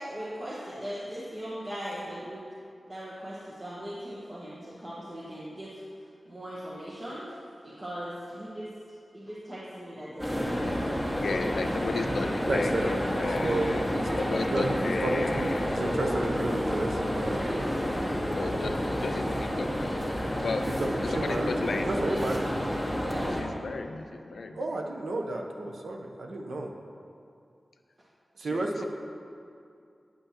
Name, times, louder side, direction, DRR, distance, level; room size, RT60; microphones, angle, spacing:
voice 1, 0.0-2.4 2.9-5.8 6.2-7.3 7.6-8.7 9.1-11.3 11.8-12.1 23.0-23.3, equal, 40° right, -9 dB, 1.3 m, -39 dB
sound 1, 10.2-23.4, equal, 15° right, 1.6 m, -30 dB
voice 2, 11.2-13.8 14.2-15.8 18.3-20.0 20.4-20.7 21.0-21.9 23.4-24.6 28.5-28.8, left 3 dB, 85° left, 7 dB, 0.4 m, -34 dB
voice 3, 12.5-13.0 13.4-14.1 14.5-17.4 20.8-21.5 21.8-22.4 24.5-26.7 28.4-28.8, right 2 dB, 85° right, 1 dB, 0.6 m, -31 dB
9.0 x 5.5 x 2.9 m, 2.4 s
cardioid pair, 50°, 0 cm